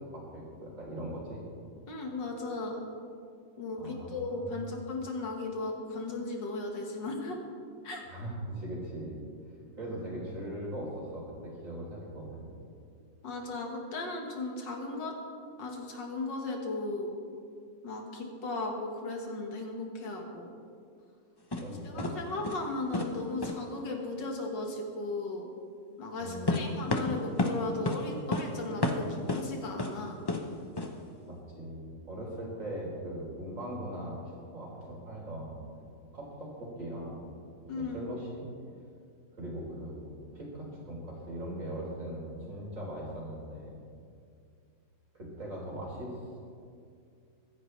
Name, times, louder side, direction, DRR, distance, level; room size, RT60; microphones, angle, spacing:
voice 1, 0.1-1.4 3.8-4.7 8.1-9.2 9.8-12.5 21.6-22.2 26.2-26.9 30.8-31.0 31.3-35.6 36.1-37.2 37.6-38.4 39.4-43.7 45.1-46.2, right 1 dB, 45° right, -4 dB, 4.1 m, -40 dB
voice 2, 1.9-2.8 3.6-7.5 7.8-8.0 13.2-15.2 15.6-17.2 17.8-20.5 21.8-25.5 26.0-30.2 37.7-38.1, left 2 dB, 75° left, 1 dB, 2.3 m, -36 dB
sound 1, 21.5-21.6 22.0-22.2 22.4-22.7 22.9-23.1 23.4-23.6 26.5-27.6 27.9-28.0 28.3-28.5 28.8-29.4 29.8-29.9 30.3-30.4 30.8-30.9, left 2 dB, 35° left, 0.3 m, -30 dB
24.5 x 10.5 x 3.3 m, 2.4 s
omnidirectional pair, 1.9 m